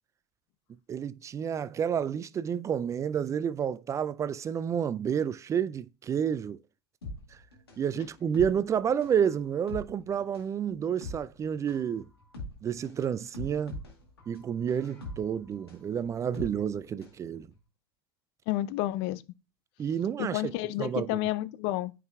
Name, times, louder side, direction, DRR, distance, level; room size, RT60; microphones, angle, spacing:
voice 1, 0.9-6.6 7.8-12.1 12.6-13.8 14.3-17.5 19.8-20.5 20.8-21.3, right 8 dB, 25° right, 0.3 m, -30 dB
sound 1, 7.0-17.2 17.5-17.6, left 1 dB, 85° left, 2.2 m, -43 dB
voice 2, 18.5-19.2 20.2-21.9, left 16 dB, 50° left, 0.5 m, -30 dB
9.3 x 4.7 x 2.3 m
hypercardioid pair, 85°, 13 cm